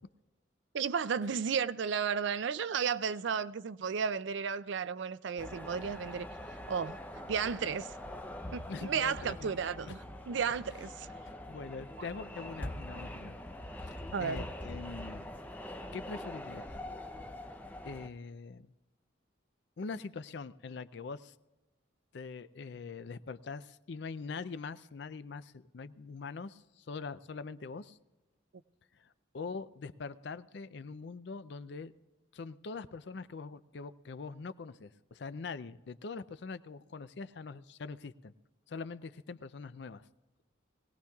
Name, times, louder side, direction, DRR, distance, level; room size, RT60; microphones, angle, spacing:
voice 1, 0.7-6.3 6.7-7.0 7.3-8.0 8.5-11.1 12.0-12.1 14.1-14.5, right 6 dB, 70° right, 0.4 m, -33 dB
sound 1, 5.4-18.1, left 1 dB, 10° left, 0.6 m, -44 dB
voice 2, 8.7-9.5 9.9-10.0 11.3-13.4 13.8-15.3 15.9-16.7 17.8-18.7 19.8-21.3 22.1-28.0 28.9-31.9 32.3-38.3 38.7-40.1, left 4 dB, 60° left, 0.4 m, -43 dB
21.5 x 17.5 x 2.3 m
head